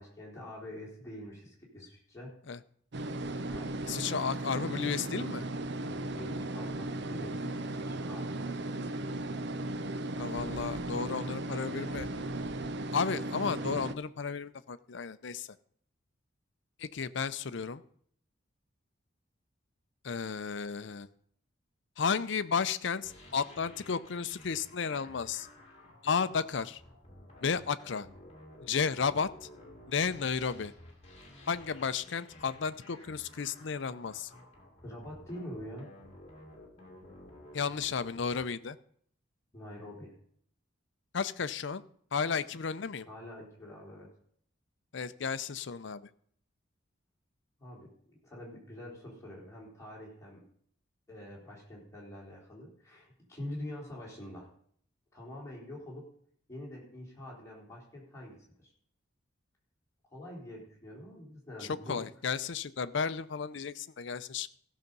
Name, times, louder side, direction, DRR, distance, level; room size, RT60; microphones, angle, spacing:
voice 1, 0.0-2.3 3.5-4.0 5.8-8.7 12.1-12.2 34.8-35.9 39.5-40.1 43.1-44.1 47.6-50.5 51.1-54.5 55.1-56.1 56.5-58.7 60.1-62.0, left 1 dB, 15° left, -4 dB, 3.9 m, -45 dB
sound 1, 2.9-13.9, right 2 dB, 60° right, 0.6 m, -36 dB
voice 2, 3.9-5.5 10.2-12.1 12.9-15.5 16.8-17.8 20.0-21.1 22.0-25.5 26.0-26.8 27.4-28.1 28.6-29.5 29.9-30.7 31.5-34.3 37.5-38.8 41.1-41.8 42.1-43.1 44.9-46.1 61.6-64.5, left 5 dB, 65° left, 14 dB, 0.6 m, -33 dB
sound 2, 23.0-38.5, left 1 dB, 30° left, 2.2 m, -53 dB
15.5 x 6.6 x 5.4 m, 0.62 s
head